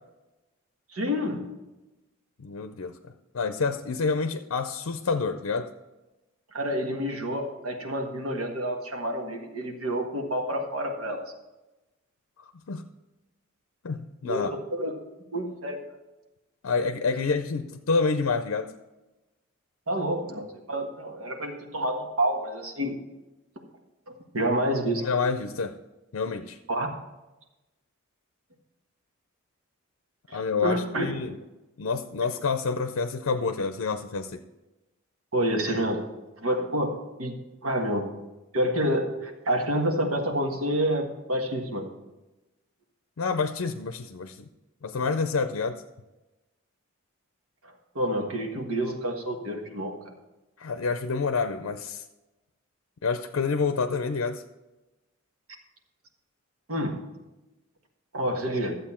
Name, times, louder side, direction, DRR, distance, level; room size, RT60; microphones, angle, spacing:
voice 1, 0.9-1.4 6.5-11.2 14.2-14.4 14.7-14.9 15.3-15.8 19.9-23.0 24.1-25.0 26.7-26.9 30.3-31.1 35.3-36.0 36.4-36.9 37.2-37.3 37.6-38.1 38.5-41.9 47.9-49.9 56.7-57.0 58.1-58.8, right 1 dB, 85° right, 2 dB, 1.6 m, -28 dB
voice 2, 2.4-5.7 12.4-12.8 13.8-14.5 16.6-18.7 25.0-25.8 26.1-26.6 30.3-31.4 31.8-34.4 43.2-44.5 44.8-45.8 50.6-52.0 53.0-54.4, left 4 dB, 80° left, 8 dB, 0.5 m, -28 dB
12.0 x 7.8 x 4.4 m, 1.1 s
head